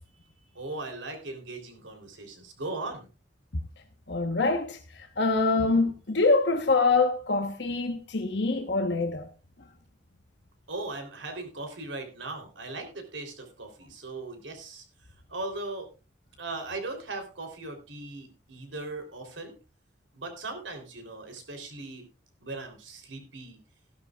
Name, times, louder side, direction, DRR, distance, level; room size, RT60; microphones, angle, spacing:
voice 1, 0.6-3.1 10.7-14.8 15.3-15.9 16.4-19.5 20.1-22.0 22.4-23.6, right 2 dB, 85° right, 3.5 m, -38 dB
voice 2, 4.1-9.3, left 3 dB, 65° left, 1.2 m, -25 dB
16.0 x 12.0 x 2.4 m
head